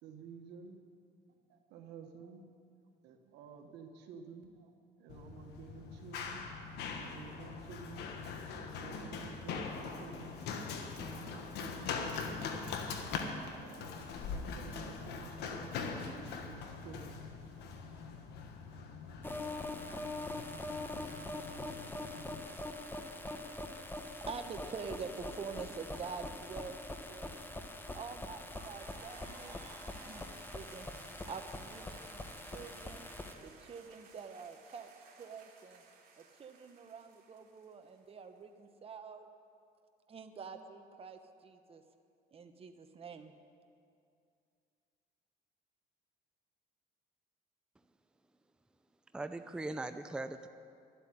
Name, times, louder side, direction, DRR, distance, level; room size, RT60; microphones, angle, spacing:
voice 1, 0.0-0.8 1.5-2.4 3.0-4.7 5.0-6.4 6.9-10.3 10.9-12.8 13.5-15.7 16.2-17.2, right 6 dB, 90° right, 5 dB, 1.3 m, -52 dB
Run, 5.1-22.4, left 5 dB, 80° left, 1.4 m, -42 dB
sound 1, 19.2-33.3, left 2 dB, 10° left, 1.1 m, -43 dB
voice 2, 24.3-27.4 27.9-29.6 29.9-30.9 31.2-33.1 33.4-34.9 35.2-35.8 36.2-39.3 40.1-41.8 42.3-43.3, right 5 dB, 35° right, 7 dB, 1.0 m, -46 dB
sound 2, 28.4-38.2, right 4 dB, 60° right, 2.7 m, -57 dB
voice 3, 49.1-50.5, right 2 dB, 5° right, 9 dB, 0.5 m, -40 dB
12.0 x 8.2 x 9.7 m, 2.4 s
cardioid pair, 110°, 17 cm